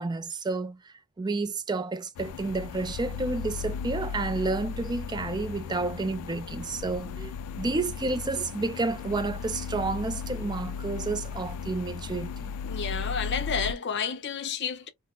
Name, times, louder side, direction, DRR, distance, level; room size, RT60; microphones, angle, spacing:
voice 1, 0.0-12.5, right 3 dB, 20° right, 0.3 m, -30 dB
sound 1, 2.2-13.7, left 6 dB, 85° left, 0.3 m, -36 dB
voice 2, 12.6-14.9, left 6 dB, 50° left, 0.6 m, -31 dB
3.9 x 2.0 x 2.3 m
head